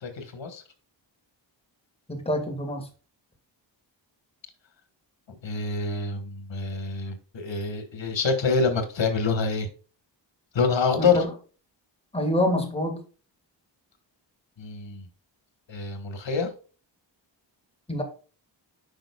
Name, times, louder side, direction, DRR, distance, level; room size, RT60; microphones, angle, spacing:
voice 1, 0.0-0.6 5.4-9.7 10.5-11.2 14.6-15.0 15.7-16.5, left 4 dB, 70° left, 7 dB, 1.6 m, -26 dB
voice 2, 2.1-2.9 11.0-11.3 12.1-13.0 17.9-18.0, left 1 dB, 15° left, 2 dB, 1.7 m, -26 dB
9.0 x 5.4 x 2.3 m, 0.37 s
wide cardioid pair, 115°, 46 cm